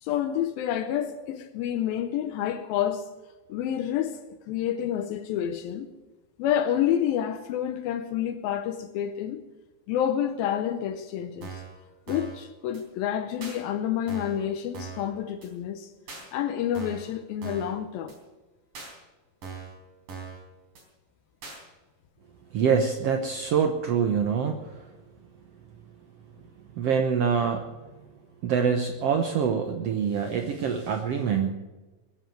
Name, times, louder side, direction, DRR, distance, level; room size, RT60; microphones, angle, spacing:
voice 1, 0.0-3.1 3.5-4.2 4.5-5.9 6.4-9.4 9.9-11.6 12.1-15.9 16.3-18.2, left 10 dB, 80° left, 2.6 m, -28 dB
sound 1, 11.4-11.7 12.1-12.4 12.7-12.8 13.4-13.6 14.1-14.4 14.7-15.1 15.4-15.5 16.1-16.3 16.8-17.1 17.4-17.7 18.1-18.2 18.8-18.9 19.4-19.8 20.1-20.4 20.8-20.9 21.4-21.6, right 5 dB, 65° right, 5.5 m, -40 dB
voice 2, 22.5-24.9 26.7-27.7 28.4-31.5, right 6 dB, 85° right, 1.3 m, -25 dB
21.5 x 7.7 x 7.8 m
omnidirectional pair, 4.2 m